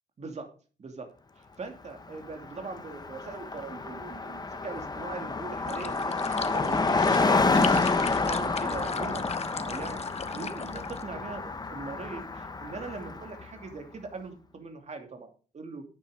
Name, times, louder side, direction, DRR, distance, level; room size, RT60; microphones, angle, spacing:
voice 1, 0.2-0.5 0.8-1.1 1.4-7.9 8.3-15.8, right 4 dB, 45° right, 4 dB, 2.7 m, -41 dB
Car passing by, 2.1-2.2 2.4-13.5, left 3 dB, 25° left, 1.2 m, -29 dB
sound 1, 5.7-11.0, left 6 dB, 40° left, 0.8 m, -39 dB
9.5 x 9.4 x 4.9 m, 0.37 s
cardioid pair, 115°, 16 cm